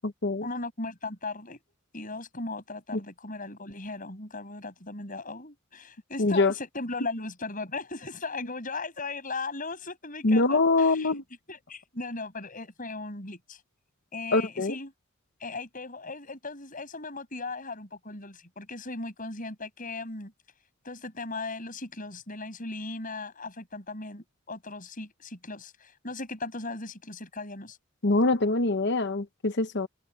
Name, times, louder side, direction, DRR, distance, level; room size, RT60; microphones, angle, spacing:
voice 1, 0.4-1.6 1.9-11.1 11.5-13.6 14.1-14.9 15.4-20.3 20.8-27.8, left 3 dB, 40° left, 7.4 m, -37 dB
voice 2, 6.2-6.5 10.2-11.2 14.3-14.8 28.0-29.9, left 3 dB, 55° left, 1.0 m, -24 dB
head